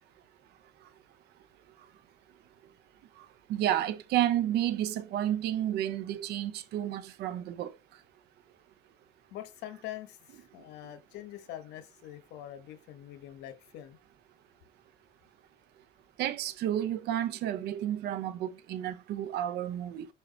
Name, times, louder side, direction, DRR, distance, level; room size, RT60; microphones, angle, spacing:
voice 1, 3.5-7.7 16.2-20.1, right 11 dB, 80° right, 0.8 m, -31 dB
voice 2, 9.3-14.0, left 12 dB, 85° left, 1.0 m, -44 dB
5.7 x 4.5 x 3.8 m
cardioid pair, 110°, 17 cm